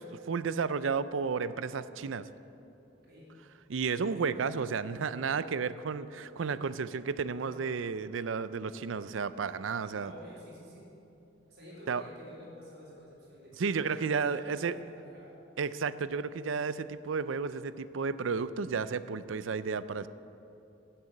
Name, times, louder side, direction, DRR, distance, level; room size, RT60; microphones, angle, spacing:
voice 1, 0.3-2.3 3.7-10.1 11.9-12.0 13.6-14.8 15.6-20.1, right 5 dB, 85° right, 14 dB, 0.5 m, -32 dB
voice 2, 2.9-3.4 7.3-7.6 9.9-11.0 11.5-15.4, equal, 60° right, -6 dB, 3.5 m, -50 dB
16.0 x 6.8 x 7.8 m, 2.8 s
head